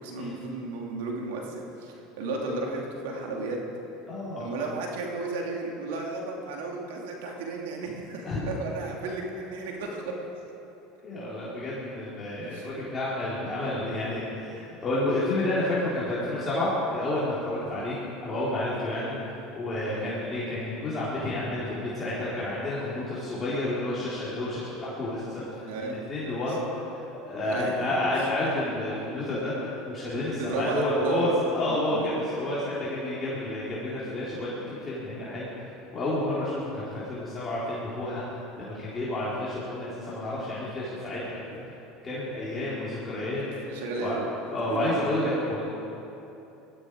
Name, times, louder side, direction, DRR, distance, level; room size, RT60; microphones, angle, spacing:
voice 1, 0.0-3.6 4.4-10.1 12.4-12.7 19.8-20.3 25.6-26.0 26.5-26.6 27.4-28.0 30.4-31.3 31.7-32.3 43.7-44.3 44.7-44.8, right 3 dB, 80° right, 0 dB, 2.7 m, -33 dB
voice 2, 4.1-4.5 8.3-8.4 11.0-18.0 18.2-19.1 19.5-25.5 25.8-26.6 27.2-35.5 35.9-38.2 38.6-41.4 42.0-43.4 44.0-44.2 44.5-45.6, left 1 dB, 25° left, -9 dB, 4.1 m, -30 dB
20.0 x 14.0 x 5.0 m, 3.0 s
supercardioid pair, 105°, 0 cm